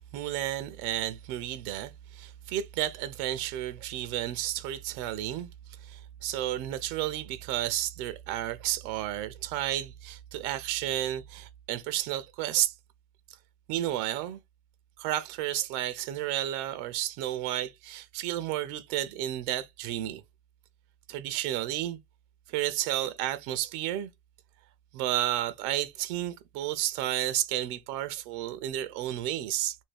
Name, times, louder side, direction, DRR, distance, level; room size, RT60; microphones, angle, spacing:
voice 1, 0.1-5.5 5.8-12.7 13.7-14.4 15.0-20.2 21.1-22.0 22.5-24.1 24.9-29.8, right 13 dB, 80° right, 0.6 m, -32 dB
2.7 x 2.7 x 3.3 m
cardioid pair, 160°, 44 cm